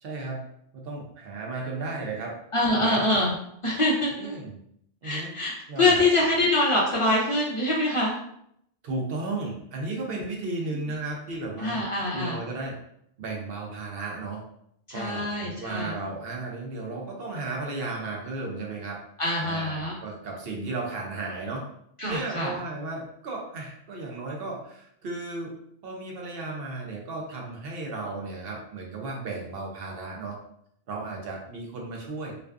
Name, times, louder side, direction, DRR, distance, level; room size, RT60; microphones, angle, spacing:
voice 1, 0.0-0.4 0.7-2.3 2.7-3.0 4.2-4.6 5.0-5.4 5.7-6.0 8.8-11.8 12.1-12.8 13.2-14.4 14.9-19.0 19.4-21.6 22.0-25.6 25.8-30.4 30.9-32.3, right 3 dB, 65° right, -1 dB, 0.8 m, -34 dB
voice 2, 2.5-3.3 3.6-4.4 5.0-8.2 10.1-10.3 11.6-12.4 14.9-15.9 19.2-20.0 22.0-22.5, left 2 dB, 45° left, -5 dB, 0.4 m, -25 dB
2.4 x 2.3 x 2.3 m, 0.72 s
omnidirectional pair, 1.1 m